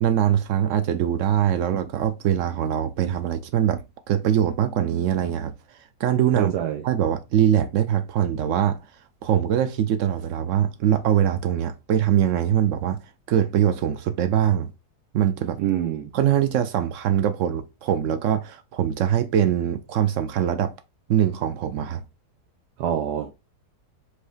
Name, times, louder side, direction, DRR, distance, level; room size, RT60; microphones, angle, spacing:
voice 1, 0.0-3.8 4.1-5.5 6.0-6.5 6.8-8.8 9.2-13.0 13.3-14.7 15.1-15.6 16.1-20.7 21.1-22.0, right 10 dB, 70° right, 0.8 m, -22 dB
voice 2, 6.3-6.8 15.6-16.1 22.8-23.3, right 10 dB, 85° right, 1.2 m, -25 dB
4.7 x 2.9 x 3.1 m
omnidirectional pair, 1.7 m